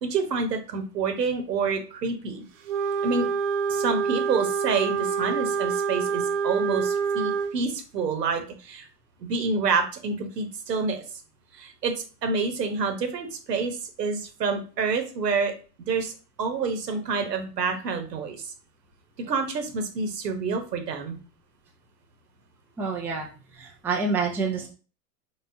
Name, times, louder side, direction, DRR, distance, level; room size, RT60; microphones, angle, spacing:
voice 1, 0.0-2.4 3.0-3.3 3.7-8.9 9.2-11.0 11.5-11.9 12.2-15.5 15.9-16.1 16.4-18.5 19.2-21.2, right 4 dB, 90° right, 6 dB, 1.2 m, -28 dB
Wind instrument woodwind instrument, 2.7-7.5, right 6 dB, 50° right, 0.9 m, -26 dB
voice 2, 22.8-23.3 23.5-24.7, right 4 dB, 5° right, -1 dB, 0.4 m, -27 dB
4.1 x 3.5 x 2.7 m, 0.37 s
hypercardioid pair, 115°, 47 cm